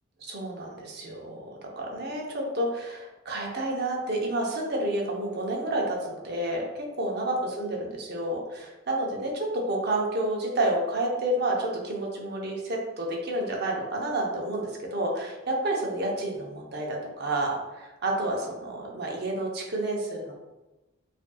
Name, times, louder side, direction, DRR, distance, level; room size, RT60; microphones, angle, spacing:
voice 1, 0.2-20.3, right 1 dB, 55° right, -1 dB, 0.8 m, -30 dB
5.2 x 2.6 x 2.3 m, 1.1 s
head